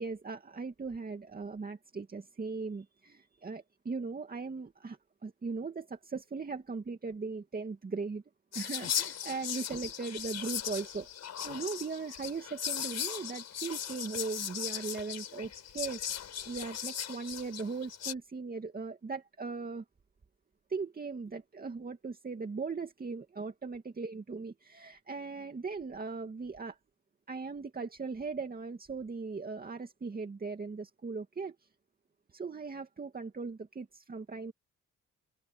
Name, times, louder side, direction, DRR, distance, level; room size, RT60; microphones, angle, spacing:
voice 1, 0.0-8.2 8.5-11.1 11.4-16.0 16.5-19.8 20.7-26.8 27.3-31.5 32.3-34.5, right 4 dB, 30° right, 2.4 m, -39 dB
Whispering, 8.5-18.1, left 9 dB, 60° left, 6.7 m, -38 dB
cardioid pair, 90°, 30 cm